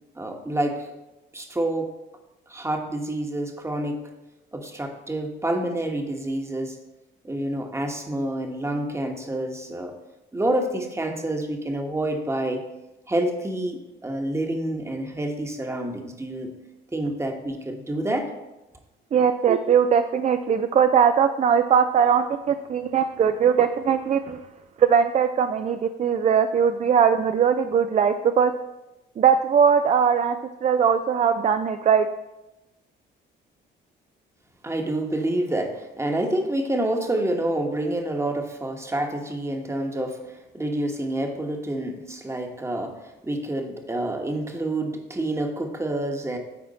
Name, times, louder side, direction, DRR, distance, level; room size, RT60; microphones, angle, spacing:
voice 1, 0.1-0.9 1.3-1.9 2.5-4.1 4.5-6.8 7.2-9.9 10.3-12.6 13.1-16.5 16.9-18.3 34.6-46.4, right 1 dB, 15° right, 3 dB, 1.1 m, -28 dB
voice 2, 19.1-24.4 24.8-28.5 29.2-32.1, right 7 dB, 35° right, 9 dB, 0.4 m, -20 dB
9.4 x 4.3 x 4.1 m, 0.99 s
cardioid pair, 90°, 20 cm